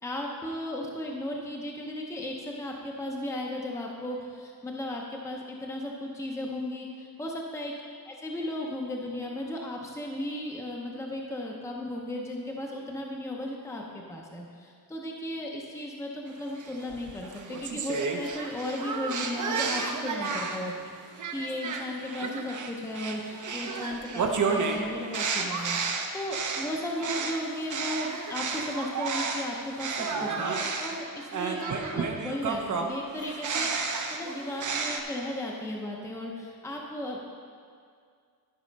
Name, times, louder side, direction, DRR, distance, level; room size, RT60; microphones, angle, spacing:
voice 1, 0.0-7.7 8.1-37.2, left 1 dB, 5° left, -1 dB, 0.7 m, -35 dB
sound 1, 16.6-20.7 21.2-29.5 29.8-35.0, right 5 dB, 50° right, 0.8 m, -32 dB
12.5 x 5.5 x 5.2 m, 2.2 s
wide cardioid pair, 180°, 39 cm